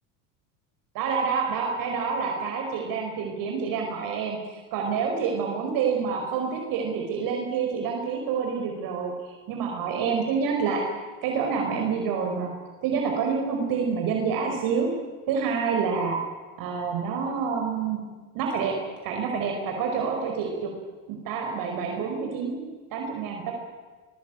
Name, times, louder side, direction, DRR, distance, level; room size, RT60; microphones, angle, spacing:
voice 1, 1.0-9.1 9.5-10.8 11.2-12.5 12.8-14.9 15.3-16.2 16.6-18.0 18.4-18.8 19.0-20.7 21.1-22.6 22.9-23.5, right 6 dB, 60° right, 2 dB, 5.2 m, -27 dB
22.5 x 21.0 x 9.2 m, 1.4 s
supercardioid pair, 110°, 39 cm